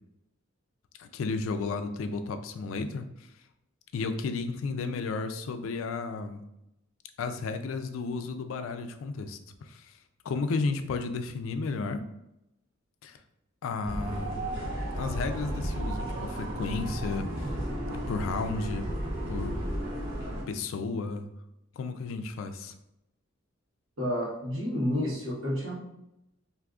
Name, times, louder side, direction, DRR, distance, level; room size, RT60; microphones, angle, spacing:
voice 1, 1.0-3.0 3.9-6.4 7.2-9.9 10.2-12.0 13.0-13.2 13.6-14.5 14.9-17.5 18.1-18.8 19.3-19.6 20.5-21.3 21.8-22.7, left 4 dB, 75° left, 8 dB, 0.3 m, -33 dB
sound 1, 13.8-20.4, right 1 dB, 60° right, 0.9 m, -33 dB
voice 2, 24.0-25.9, equal, 85° right, -4 dB, 1.1 m, -30 dB
2.6 x 2.4 x 3.5 m, 0.86 s
head